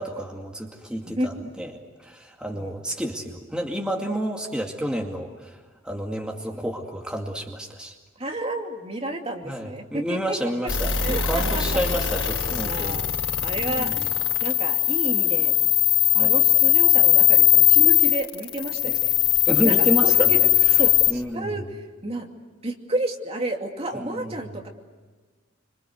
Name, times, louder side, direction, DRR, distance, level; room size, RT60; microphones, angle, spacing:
voice 1, 0.0-1.7 2.0-5.6 5.8-8.0 9.4-13.0 13.7-14.1 16.2-16.3 19.5-20.3 21.1-21.6 23.9-24.5, equal, 5° right, 0 dB, 2.3 m, -30 dB
voice 2, 8.2-10.4 11.0-11.6 12.4-13.0 13.4-15.5 16.1-19.1 19.6-20.4 20.7-22.3 22.6-24.7, right 1 dB, 30° right, 2 dB, 2.6 m, -31 dB
sound 1, 10.7-21.1, left 13 dB, 85° left, 3.8 m, -20 dB
27.0 x 26.5 x 8.0 m, 1.4 s
head